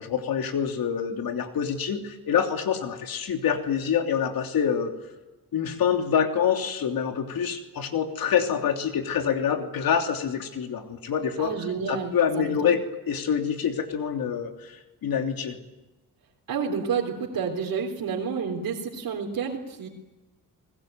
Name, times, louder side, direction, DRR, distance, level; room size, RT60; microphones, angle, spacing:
voice 1, 0.0-4.9 5.5-11.5 11.9-12.8 13.1-15.6, left 7 dB, 75° left, 5 dB, 3.2 m, -26 dB
voice 2, 11.4-12.7 16.5-19.9, right 6 dB, 70° right, -2 dB, 3.6 m, -30 dB
29.5 x 20.5 x 9.2 m, 1.1 s
cardioid pair, 95°, 35 cm